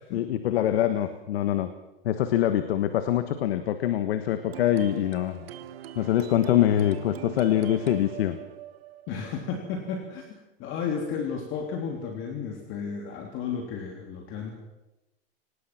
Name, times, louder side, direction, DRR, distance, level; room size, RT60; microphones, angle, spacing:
voice 1, 0.1-1.7 2.0-5.5 5.9-8.4, left 12 dB, 75° left, 10 dB, 1.6 m, -24 dB
sound 1, 4.4-10.0, right 11 dB, 70° right, 1.9 m, -42 dB
voice 2, 9.1-14.5, left 6 dB, 40° left, 3 dB, 3.2 m, -33 dB
24.5 x 19.0 x 6.0 m, 1.0 s
supercardioid pair, 135°, 31 cm